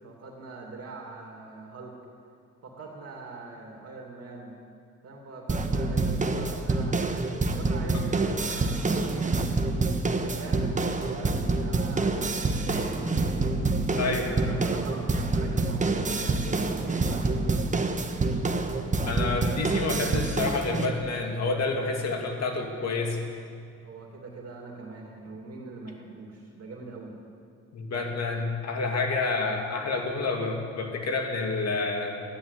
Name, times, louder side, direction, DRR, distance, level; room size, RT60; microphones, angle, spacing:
voice 1, 0.0-1.9 2.6-4.5 5.0-7.0 7.5-9.5 10.2-13.0 13.3-13.7 14.0-17.8 23.8-27.1, right 3 dB, 55° right, 0 dB, 2.6 m, -42 dB
sound 1, 5.5-20.9, right 3 dB, 25° right, 1.2 m, -27 dB
voice 2, 19.0-23.2 27.7-32.2, left 3 dB, 60° left, 2 dB, 2.5 m, -29 dB
13.5 x 10.5 x 8.1 m, 2.3 s
cardioid pair, 90°, 30 cm